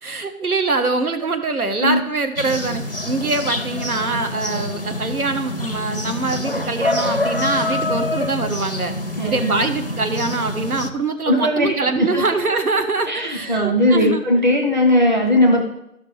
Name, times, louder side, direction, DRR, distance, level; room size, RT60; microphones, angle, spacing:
voice 1, 0.0-8.9 9.2-14.2, right 3 dB, 90° right, 7 dB, 1.2 m, -23 dB
sound 1, 2.4-10.9, left 1 dB, 40° left, 0.5 m, -26 dB
voice 2, 9.2-9.6 11.3-12.2 13.1-15.6, left 1 dB, 30° right, 1 dB, 1.0 m, -18 dB
13.5 x 6.0 x 3.2 m, 0.79 s
figure-of-eight pair, 170°, 43 cm